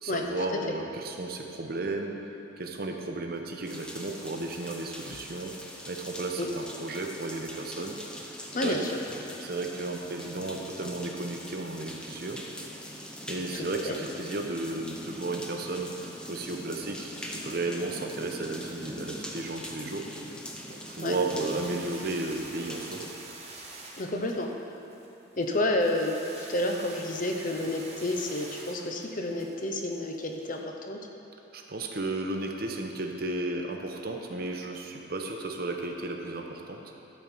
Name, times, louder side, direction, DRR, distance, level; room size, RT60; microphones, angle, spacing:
voice 1, 0.0-2.1 2.6-5.5 5.9-8.0 8.6-8.8 9.4-12.4 13.3-15.9 16.3-20.0 20.7-23.0 31.5-36.8, right 2 dB, 50° right, 2 dB, 0.9 m, -34 dB
sound 1, 3.6-23.1, equal, 5° left, 0.7 m, -42 dB
voice 2, 8.5-8.9 13.5-14.0 21.0-21.2 24.0-24.5 25.4-31.0, left 1 dB, 45° left, 2 dB, 0.8 m, -30 dB
sound 2, 21.1-30.5, right 3 dB, 35° right, 1.4 m, -46 dB
12.0 x 4.5 x 7.1 m, 2.9 s
head